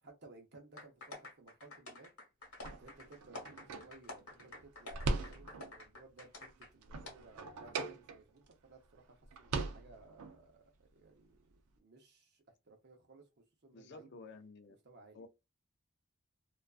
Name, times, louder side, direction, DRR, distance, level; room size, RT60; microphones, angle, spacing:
voice 1, 0.0-2.1 2.8-11.5 11.8-14.1 14.8-15.3, right 3 dB, 50° right, 0.7 m, -59 dB
sound 1, 0.8-6.7 7.0-7.1, left 2 dB, 85° left, 1.1 m, -50 dB
sound 2, 2.5-5.8 6.3-8.5 8.9-9.0 9.2-10.4, right 3 dB, 85° right, 0.5 m, -41 dB
voice 2, 13.7-14.8 15.1-15.3, left 3 dB, 50° left, 0.4 m, -52 dB
2.5 x 2.3 x 2.3 m
head